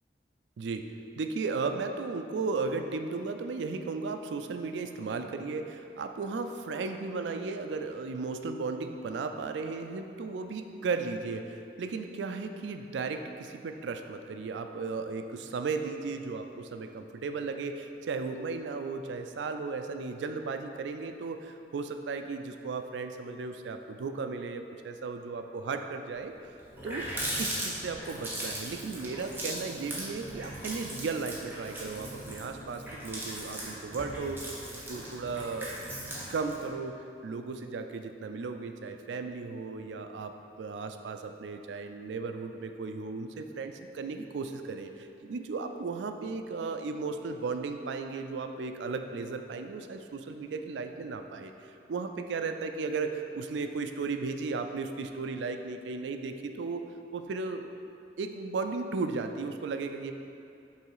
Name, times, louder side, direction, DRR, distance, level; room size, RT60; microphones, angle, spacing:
voice 1, 0.6-26.3 26.8-27.1 27.4-34.4 34.9-35.7 36.3-56.9 57.1-57.7 58.2-60.1, right 4 dB, 85° right, 7 dB, 0.4 m, -35 dB
Water tap faucet, 26.2-26.3 26.6-36.7, right 1 dB, 10° right, 1.0 m, -38 dB
5.6 x 3.9 x 4.7 m, 2.7 s
head